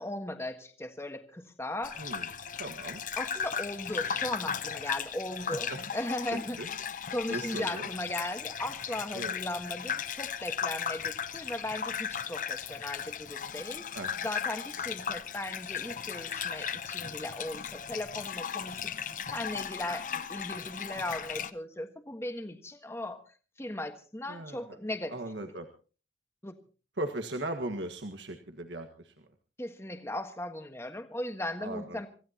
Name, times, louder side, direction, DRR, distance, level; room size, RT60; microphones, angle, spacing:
voice 1, 0.0-2.0 3.2-6.6 7.1-14.0 14.2-18.9 19.3-23.2 23.6-25.1 26.4-26.5 29.6-32.1, left 1 dB, 15° left, 7 dB, 1.4 m, -37 dB
Gurgling / Bathtub (filling or washing), 1.8-21.5, left 7 dB, 45° left, 0.7 m, -36 dB
voice 2, 2.0-2.3 2.6-3.0 5.5-5.8 6.3-6.7 7.3-7.9 9.1-9.3 13.9-14.1 24.3-24.8 25.1-25.7 27.0-29.2 31.6-32.0, right 2 dB, 80° right, 5 dB, 1.7 m, -38 dB
26.0 x 16.0 x 2.9 m, 0.37 s
head